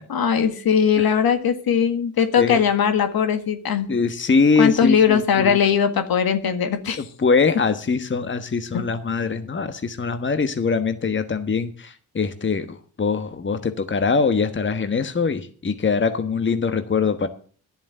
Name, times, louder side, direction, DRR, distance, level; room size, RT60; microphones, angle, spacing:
voice 1, 0.1-3.9 4.6-7.0 8.7-8.8, left 7 dB, 60° left, 8 dB, 1.8 m, -20 dB
voice 2, 3.9-5.6 7.0-17.3, left 4 dB, 30° left, 9 dB, 1.4 m, -22 dB
11.0 x 7.1 x 8.1 m, 0.43 s
supercardioid pair, 55°, 40 cm